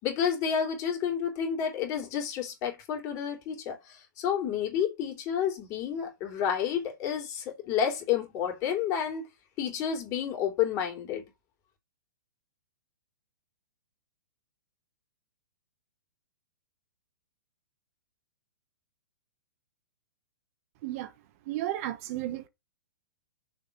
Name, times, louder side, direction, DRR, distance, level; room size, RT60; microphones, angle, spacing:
voice 1, 0.0-9.2 9.6-11.2, left 8 dB, 30° left, 3.1 m, -30 dB
voice 2, 21.5-22.5, right 14 dB, 45° right, 1.2 m, -33 dB
6.8 x 3.8 x 6.2 m
hypercardioid pair, 135°, 11 cm